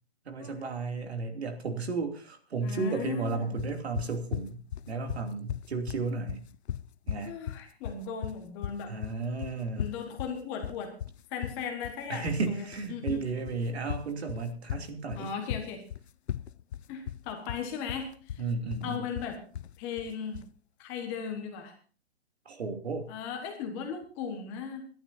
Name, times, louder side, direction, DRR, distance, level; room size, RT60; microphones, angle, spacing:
voice 1, 0.2-4.6 4.9-6.4 7.1-7.3 8.9-9.9 12.1-15.3 18.4-19.0 22.4-23.1, right 4 dB, 75° right, 4 dB, 2.9 m, -33 dB
voice 2, 2.6-3.5 7.2-8.9 9.8-10.9 11.3-13.2 15.1-15.8 16.9-18.4 18.8-19.4 19.8-20.4 20.8-21.7 23.1-24.8, left 6 dB, 15° left, 3 dB, 1.4 m, -37 dB
sound 1, 3.6-20.6, left 10 dB, 80° left, 0.6 m, -38 dB
24.5 x 11.5 x 2.7 m, 0.40 s
hypercardioid pair, 175°, 32 cm